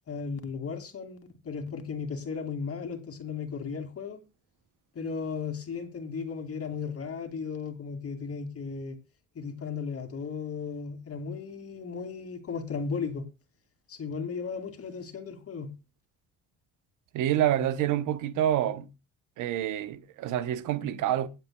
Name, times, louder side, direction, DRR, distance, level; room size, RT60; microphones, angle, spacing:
voice 1, 0.1-1.2 1.4-4.2 4.9-9.0 9.4-13.3 13.9-15.7, left 5 dB, 50° left, 2.3 m, -35 dB
voice 2, 17.1-18.9 19.4-21.3, right 11 dB, 90° right, 0.9 m, -27 dB
23.0 x 7.7 x 2.3 m
cardioid pair, 90°, 30 cm